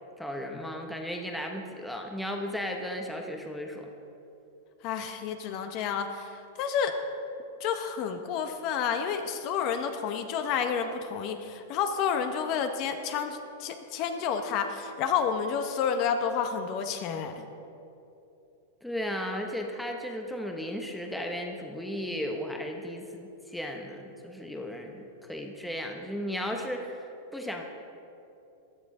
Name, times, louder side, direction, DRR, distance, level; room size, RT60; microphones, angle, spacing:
voice 1, 0.2-3.9 18.8-27.6, equal, ahead, 2 dB, 0.8 m, -35 dB
voice 2, 4.8-7.0 7.6-17.5, left 7 dB, 40° left, 7 dB, 0.8 m, -30 dB
16.0 x 10.5 x 3.7 m, 2.8 s
supercardioid pair, 155°, 0 cm